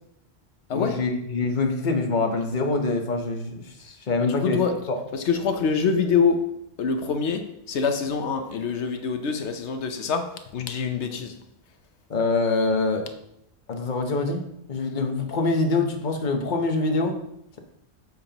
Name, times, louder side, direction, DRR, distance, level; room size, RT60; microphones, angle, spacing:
voice 1, 0.7-4.6 12.1-13.0 13.7-14.4 14.7-17.2, left 3 dB, 45° left, 1.1 m, -25 dB
voice 2, 4.2-4.8 5.1-11.3, left 5 dB, 85° left, 1.1 m, -25 dB
9.3 x 7.3 x 2.9 m
omnidirectional pair, 1.1 m